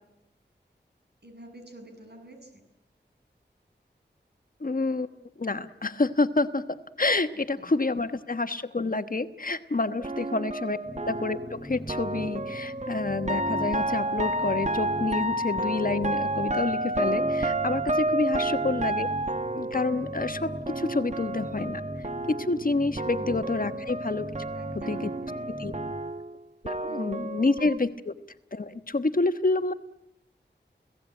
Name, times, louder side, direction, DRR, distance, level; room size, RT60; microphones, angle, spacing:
voice 1, 1.2-2.5 7.6-7.7 10.2-10.3 23.1-23.5 24.5-25.6 26.9-27.5, right 1 dB, 65° right, 5 dB, 7.6 m, -48 dB
voice 2, 4.6-5.1 5.4-6.6 7.0-19.1 19.5-24.3 24.9-25.1 25.6-25.7 26.6-28.1 28.5-29.7, left 3 dB, 50° left, 9 dB, 1.3 m, -28 dB
sound 1, 10.0-22.7 23.0-27.8, right 1 dB, 40° right, 1.1 m, -31 dB
sound 2, 10.9-25.9, equal, 10° left, 7.7 m, -40 dB
30.0 x 17.5 x 9.0 m, 0.83 s
wide cardioid pair, 60°, 19 cm